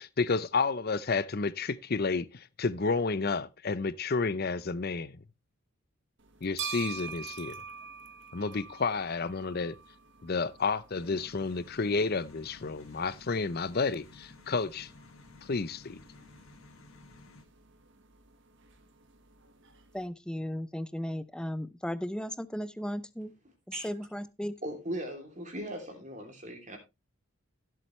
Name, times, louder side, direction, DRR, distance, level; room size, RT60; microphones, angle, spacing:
voice 1, 0.0-5.1 6.4-7.6 8.3-9.8 10.2-14.9 15.5-16.0, left 4 dB, 45° left, 0.6 m, -31 dB
sound 1, 6.2-20.1, right 7 dB, 55° right, 1.5 m, -47 dB
sound 2, 10.9-17.4, left 3 dB, 65° left, 2.0 m, -54 dB
voice 2, 19.9-23.3 23.7-24.6, equal, 5° left, 0.5 m, -36 dB
voice 3, 24.6-26.8, right 1 dB, 35° right, 3.0 m, -38 dB
15.5 x 7.7 x 3.2 m
head